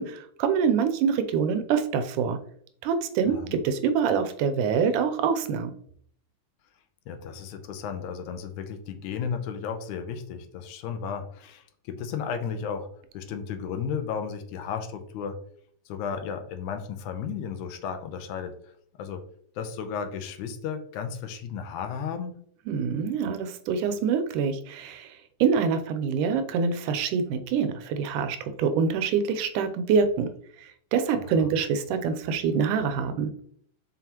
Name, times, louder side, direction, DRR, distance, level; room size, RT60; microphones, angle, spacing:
voice 1, 0.0-2.4 2.8-5.7 22.7-30.3 30.6-33.3, right 6 dB, 85° right, 9 dB, 2.2 m, -25 dB
voice 2, 3.3-3.6 7.1-12.9 13.1-15.4 15.9-18.6 19.0-19.2 19.6-22.4 31.3-31.5, left 7 dB, 80° left, 7 dB, 2.0 m, -34 dB
5.9 x 5.5 x 2.9 m, 0.62 s
omnidirectional pair, 3.6 m